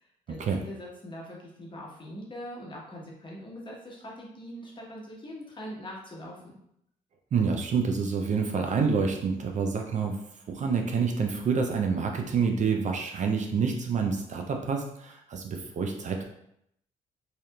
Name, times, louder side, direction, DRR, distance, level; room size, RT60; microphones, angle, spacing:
voice 1, 0.3-6.6, equal, 30° left, -3 dB, 1.0 m, -42 dB
voice 2, 7.3-10.2 10.5-16.2, right 5 dB, 50° right, 3 dB, 0.4 m, -27 dB
2.7 x 2.4 x 2.2 m, 0.76 s
supercardioid pair, 55°, 16 cm